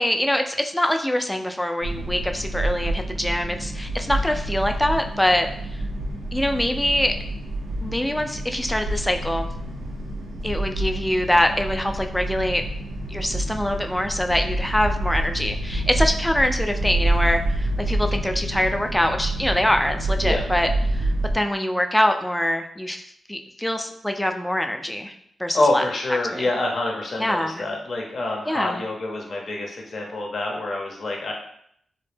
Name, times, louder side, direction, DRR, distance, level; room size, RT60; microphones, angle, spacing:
voice 1, 0.0-5.5 6.3-7.1 7.8-9.5 10.4-12.6 13.1-21.1 21.3-25.1 25.4-25.9 26.3-26.5 27.2-27.6 28.5-28.8, left 1 dB, 10° left, 5 dB, 0.3 m, -24 dB
sound 1, 1.8-21.4, right 1 dB, 90° right, 0.4 m, -27 dB
voice 2, 25.5-31.3, left 2 dB, 65° left, 0 dB, 0.6 m, -26 dB
2.1 x 2.1 x 3.2 m, 0.69 s
supercardioid pair, 40°, 0 cm